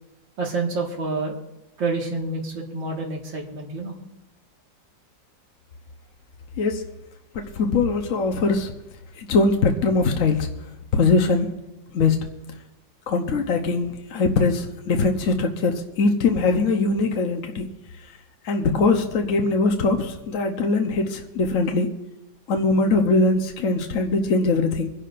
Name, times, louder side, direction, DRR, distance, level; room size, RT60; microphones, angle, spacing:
voice 1, 0.4-1.4 1.8-4.0, right 3 dB, 90° right, -1 dB, 2.5 m, -28 dB
voice 2, 7.3-8.7 9.2-10.5 10.9-11.5 11.9-12.2 13.1-17.7 18.4-21.9 22.5-24.9, left 3 dB, 50° left, 3 dB, 1.1 m, -21 dB
25.5 x 11.0 x 2.5 m, 0.96 s
omnidirectional pair, 2.0 m